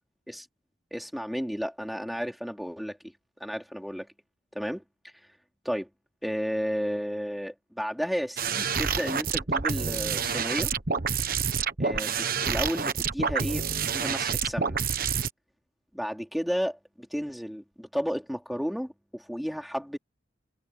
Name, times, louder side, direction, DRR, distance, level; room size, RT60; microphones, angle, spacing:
voice 1, 0.9-3.1 3.4-4.1 4.5-4.8 5.6-5.9 6.2-10.7 11.8-14.8 15.9-20.0, equal, ahead, 4.2 m, -32 dB
sound 1, 8.4-15.3, right 6 dB, 50° right, 1.2 m, -28 dB
head